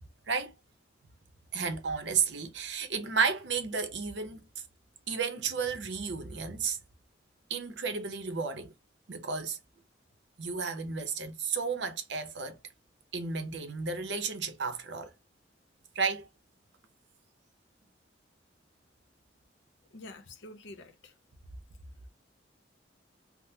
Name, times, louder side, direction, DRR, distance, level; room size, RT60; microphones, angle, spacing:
voice 1, 1.5-4.4 5.1-6.8 7.5-8.7 9.1-9.6 10.4-12.6 13.1-15.1 15.9-16.3, right 5 dB, 75° right, 0.7 m, -32 dB
voice 2, 19.9-21.1, left 2 dB, 85° left, 0.7 m, -47 dB
3.6 x 2.0 x 2.7 m
head